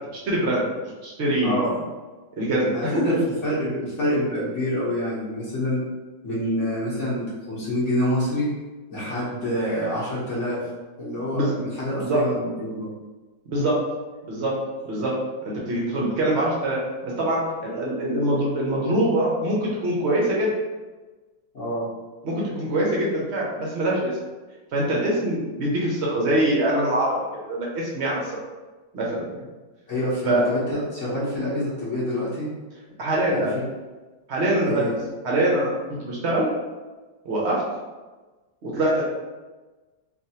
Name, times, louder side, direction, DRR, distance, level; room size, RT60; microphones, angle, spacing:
voice 1, 0.1-1.6 2.4-3.1 11.3-11.5 12.0-12.2 13.5-13.8 14.3-14.6 14.8-15.2 15.4-20.5 22.2-24.1 24.7-27.1 27.4-28.3 28.9-29.4 30.3-30.5 30.7-30.8 33.0-33.5 34.3-34.8 35.2-35.7 36.0-36.5 37.2-37.6 38.6-39.0, right 1 dB, 60° right, -4 dB, 0.7 m, -24 dB
voice 2, 1.4-1.7 2.7-3.2 3.4-5.8 6.2-8.5 8.9-10.6 11.0-12.9 21.5-21.9 29.9-32.5 33.3-33.4 34.7-35.0, equal, 50° left, -9 dB, 1.2 m, -27 dB
3.4 x 2.5 x 2.7 m, 1.2 s
omnidirectional pair, 2.0 m